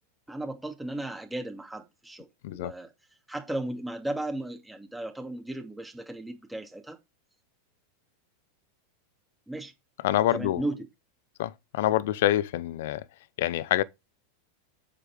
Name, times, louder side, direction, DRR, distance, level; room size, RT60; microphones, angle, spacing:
voice 1, 0.3-2.9 3.3-7.0 9.5-9.7 10.3-10.9, right 1 dB, 5° right, 2.6 m, -35 dB
voice 2, 10.0-10.6 11.4-13.0 13.4-13.8, left 14 dB, 60° left, 0.8 m, -26 dB
8.7 x 7.9 x 3.7 m
hypercardioid pair, 90°, 0 cm